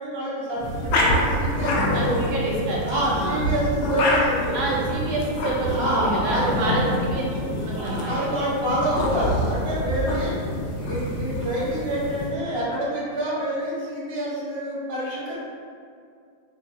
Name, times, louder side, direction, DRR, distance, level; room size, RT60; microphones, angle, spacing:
voice 1, 0.0-2.3 2.8-4.7 5.7-6.7 7.7-10.4 10.7-15.4, right 1 dB, 25° right, -8 dB, 0.6 m, -27 dB
sound 1, 0.6-12.3, left 1 dB, 70° left, 0.9 m, -27 dB
Bass guitar, 1.7-5.5, left 1 dB, 45° left, 0.7 m, -34 dB
voice 2, 1.9-2.8 3.1-3.5 4.5-7.2 7.5-8.3, right 2 dB, 75° right, -4 dB, 1.1 m, -27 dB
4.6 x 2.1 x 2.6 m, 2.3 s
omnidirectional pair, 1.8 m